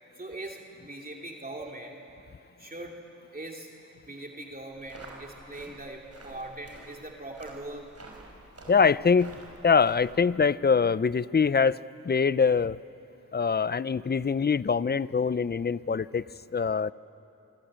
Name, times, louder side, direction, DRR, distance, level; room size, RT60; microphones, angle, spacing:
voice 1, 0.2-2.0 2.6-3.0 3.3-3.7 4.1-7.9, right 2 dB, 30° right, 0 dB, 2.7 m, -41 dB
sound 1, 4.7-10.3, right 2 dB, 55° right, 5.9 m, -50 dB
voice 2, 8.7-9.4 9.6-12.8 13.3-16.2 16.5-16.9, left 5 dB, 35° left, 18 dB, 0.5 m, -24 dB
26.0 x 25.0 x 8.8 m, 2.8 s
wide cardioid pair, 80°, 31 cm